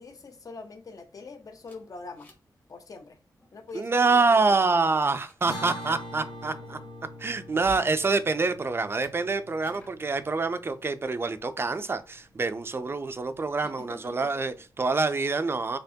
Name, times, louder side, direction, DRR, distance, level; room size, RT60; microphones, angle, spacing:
voice 1, 0.0-2.3 2.7-3.2 3.5-4.9 6.4-6.9 13.6-14.3, left 4 dB, 55° left, 0.7 m, -44 dB
sound 1, 1.7-2.6 2.8-3.0 3.4-3.8 4.4-4.7 5.2-5.9 7.4-7.9 8.9-9.1 9.6-10.0, equal, 25° left, 0.9 m, -49 dB
voice 2, 3.7-6.8 7.2-15.8, right 3 dB, 35° right, 0.4 m, -26 dB
sound 2, 5.4-11.9, equal, 85° left, 1.3 m, -43 dB
4.4 x 2.8 x 2.7 m
wide cardioid pair, 120°, 7 cm